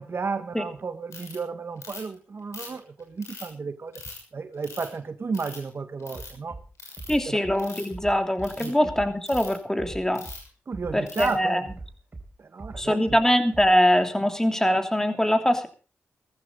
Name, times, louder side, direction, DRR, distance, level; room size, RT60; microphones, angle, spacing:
voice 1, 0.0-4.0 4.3-6.6 7.3-7.4 8.6-8.9 10.7-11.7 12.4-13.2, right 4 dB, 55° right, 9 dB, 1.7 m, -33 dB
Ratchet pawl, 1.1-1.4 1.8-2.1 2.5-3.5 3.9-4.2 4.6-5.0 5.3-5.7 6.0-6.3 6.8-7.1 7.5-7.9 8.4-8.7 9.3-9.5 10.1-10.5 11.1-11.3, left 4 dB, 80° left, 6.6 m, -41 dB
Bass drum, 6.1-6.6 7.0-7.6 7.9-8.5 8.8-9.5 9.8-10.4 10.7-11.3 11.7-12.3 12.6-13.2 13.5-13.6, right 3 dB, 35° right, 4.3 m, -40 dB
voice 2, 7.1-10.2 10.9-11.6 12.8-15.7, equal, 10° left, 6 dB, 3.0 m, -23 dB
16.5 x 14.5 x 4.0 m, 0.36 s
supercardioid pair, 45°, 5 cm